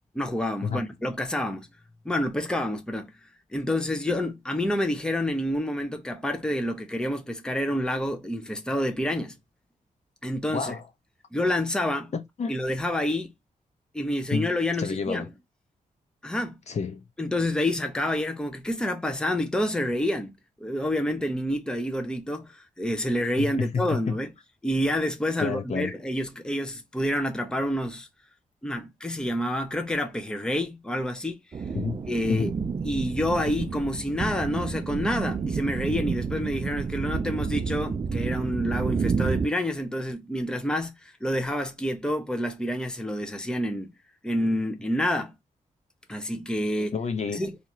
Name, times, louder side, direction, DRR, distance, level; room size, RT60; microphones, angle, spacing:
voice 1, 0.1-1.7 2.0-3.1 3.5-9.4 10.2-10.7 11.3-12.1 12.5-13.3 13.9-15.3 16.2-16.5 17.2-20.3 20.6-24.3 24.6-28.1 28.6-31.4 32.1-32.5 32.8-43.9 44.2-45.3 46.1-46.9 47.3-47.6, left 1 dB, 5° left, 0.7 m, -28 dB
voice 2, 10.5-10.8 12.1-12.5 14.3-14.5 14.8-15.3 16.7-17.0 23.4-24.2 25.4-25.9 31.7-32.0 32.3-32.5 46.8-47.4, left 5 dB, 55° left, 0.8 m, -29 dB
sound 1, 31.5-39.5, right 5 dB, 35° right, 0.4 m, -30 dB
2.8 x 2.5 x 4.2 m
cardioid pair, 85°, 14 cm